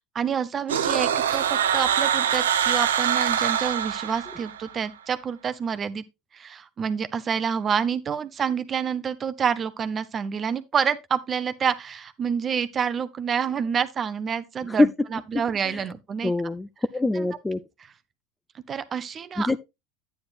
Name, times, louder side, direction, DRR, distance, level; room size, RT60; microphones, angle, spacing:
voice 1, 0.1-6.0 6.3-16.3 17.2-17.3 18.7-19.6, right 7 dB, 35° right, 0.8 m, -28 dB
sound 1, 0.7-4.7, right 8 dB, 85° right, 0.6 m, -24 dB
voice 2, 16.2-17.6 19.4-19.6, left 2 dB, 10° left, 0.6 m, -24 dB
9.5 x 9.4 x 2.4 m
hypercardioid pair, 85°, 0 cm